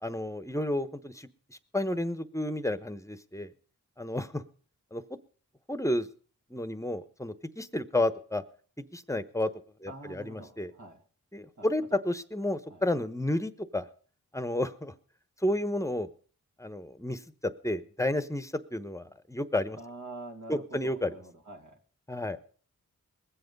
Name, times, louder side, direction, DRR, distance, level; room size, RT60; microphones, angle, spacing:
voice 1, 0.0-3.5 4.0-4.4 4.9-5.0 5.7-6.1 6.5-8.4 8.9-9.5 9.8-10.7 11.3-13.8 14.3-14.9 15.4-16.1 16.6-17.2 17.6-19.8 20.5-21.1 22.1-22.4, left 1 dB, 10° left, 13 dB, 1.0 m, -31 dB
voice 2, 9.9-11.0 11.6-12.0 12.7-12.8 19.8-21.8, right 2 dB, 60° right, 2 dB, 2.2 m, -46 dB
20.5 x 7.8 x 5.3 m, 0.44 s
cardioid pair, 55°, 34 cm